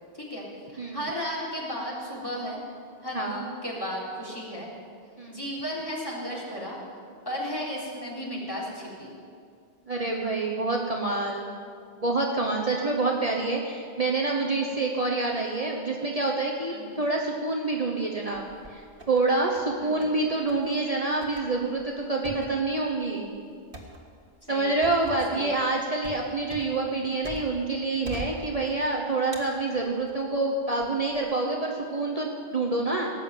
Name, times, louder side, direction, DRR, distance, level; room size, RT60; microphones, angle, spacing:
voice 1, 0.1-2.6 3.0-4.7 5.3-6.8 7.3-9.1 16.7-17.0 19.8-20.0 24.5-25.6, equal, 20° left, -5 dB, 3.5 m, -34 dB
voice 2, 3.1-3.5 5.2-5.4 9.9-11.4 12.0-18.8 19.1-23.3 24.5-33.1, right 3 dB, 35° right, -1 dB, 1.1 m, -27 dB
sound 1, 18.3-19.2 19.5-20.2 20.5-20.7 21.2-27.7 28.0-28.9 29.3-30.3 30.8-31.2, right 1 dB, 55° right, 2.0 m, -43 dB
17.5 x 7.7 x 9.0 m, 2.3 s
omnidirectional pair, 1.1 m